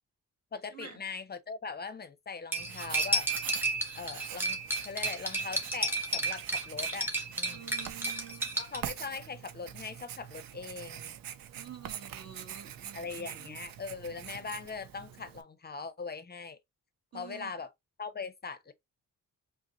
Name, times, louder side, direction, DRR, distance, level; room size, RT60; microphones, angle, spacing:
voice 1, 0.5-3.3 3.9-7.1 7.4-7.8 8.6-11.2 12.9-16.6 17.1-17.7 18.0-18.7, left 5 dB, 30° left, 0.6 m, -41 dB
Cutlery silverware, 2.5-8.8, right 1 dB, 5° right, 1.3 m, -32 dB
Writing, 2.6-15.4, right 10 dB, 85° right, 0.6 m, -45 dB
voice 2, 7.5-8.6 11.6-13.5 17.1-17.5, right 8 dB, 50° right, 1.8 m, -49 dB
5.0 x 2.0 x 2.9 m
cardioid pair, 90°, 33 cm